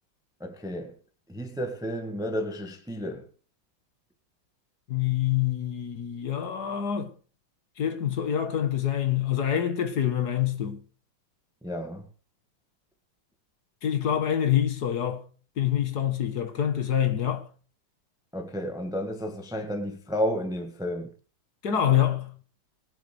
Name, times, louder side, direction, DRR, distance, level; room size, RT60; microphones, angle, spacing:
voice 1, 0.4-1.0 1.3-3.3 11.6-12.1 18.3-21.1, equal, ahead, 1.3 m, -32 dB
voice 2, 4.9-7.1 7.8-10.8 13.8-15.2 15.6-17.5 21.6-22.3, left 10 dB, 55° left, 2.0 m, -26 dB
21.0 x 7.1 x 5.1 m
omnidirectional pair, 2.1 m